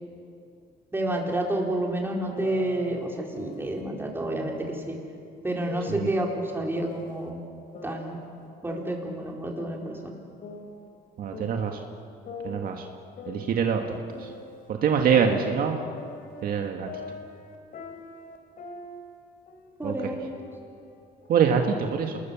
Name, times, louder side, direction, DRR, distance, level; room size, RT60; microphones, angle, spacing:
voice 1, 0.9-5.0 5.4-7.4 7.8-8.2 8.6-10.0 19.8-20.3, right 1 dB, 15° right, -1 dB, 4.4 m, -29 dB
sound 1, 2.4-3.8 4.3-4.8 5.7-7.3 7.7-9.3 9.6-11.8 12.2-14.7 15.1-19.2 19.5-19.8 20.3-21.3, left 3 dB, 55° left, 3.4 m, -43 dB
voice 2, 11.2-11.8 12.4-12.8 13.3-13.8 14.2-14.3 14.7-15.8 16.4-16.9 19.8-19.9 21.3-22.2, right 7 dB, 60° right, 3 dB, 1.8 m, -24 dB
28.0 x 20.5 x 7.2 m, 2.5 s
cardioid pair, 110°, 17 cm